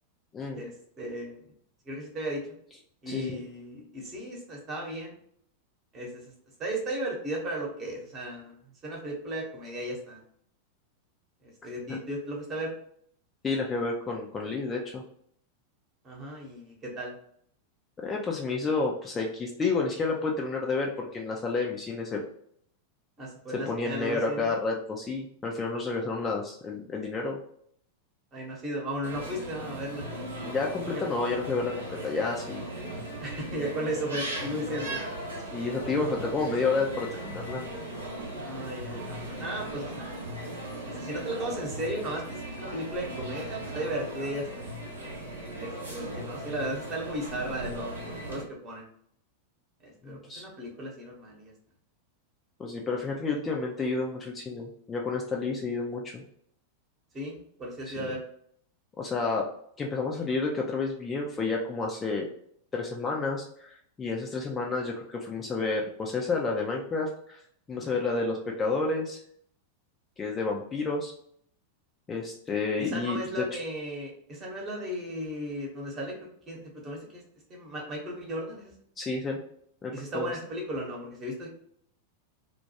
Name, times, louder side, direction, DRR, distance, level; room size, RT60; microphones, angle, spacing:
voice 1, 0.5-1.4 1.8-2.4 3.0-5.2 5.9-6.3 6.6-10.2 11.4-12.7 16.0-17.1 23.2-24.5 28.3-30.1 30.8-31.0 33.2-35.0 38.4-40.1 40.8-44.7 45.5-48.9 49.8-51.5 57.1-58.2 67.7-68.0 72.8-76.1 76.5-77.2 77.5-78.7 79.9-81.5, right 1 dB, 30° right, -2 dB, 1.0 m, -35 dB
voice 2, 3.1-3.4 13.4-15.0 18.0-22.2 23.5-27.4 30.5-32.7 35.5-37.6 50.0-50.5 52.6-56.2 57.9-58.1 59.0-59.5 59.8-62.3 62.7-67.4 67.7-69.2 70.2-71.1 72.1-73.4 79.0-79.4 79.8-80.3, left 3 dB, 20° left, -1 dB, 0.4 m, -30 dB
sound 1, 29.0-48.4, right 1 dB, 75° right, 0.7 m, -38 dB
2.2 x 2.2 x 2.8 m, 0.65 s
figure-of-eight pair, 90°, 0 cm